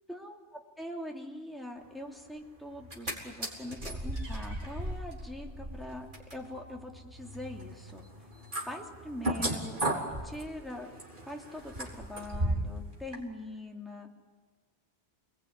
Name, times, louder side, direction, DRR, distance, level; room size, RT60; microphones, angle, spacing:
voice 1, 0.1-8.1 8.6-10.9 11.3-14.1, left 1 dB, ahead, 0 dB, 3.1 m, -43 dB
sound 1, 2.7-3.1 3.4-12.8 13.1-13.2, right 1 dB, 50° right, 4.3 m, -36 dB
29.0 x 20.5 x 9.7 m, 1.4 s
omnidirectional pair, 1.1 m